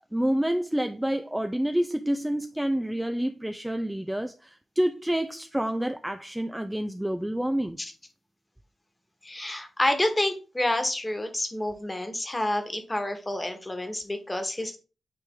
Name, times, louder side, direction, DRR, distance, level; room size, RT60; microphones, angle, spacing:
voice 1, 0.1-7.8, right 1 dB, 5° right, 0.4 m, -28 dB
voice 2, 9.2-14.8, left 1 dB, 20° left, 1.4 m, -28 dB
9.3 x 3.3 x 3.5 m
cardioid pair, 90°, 0 cm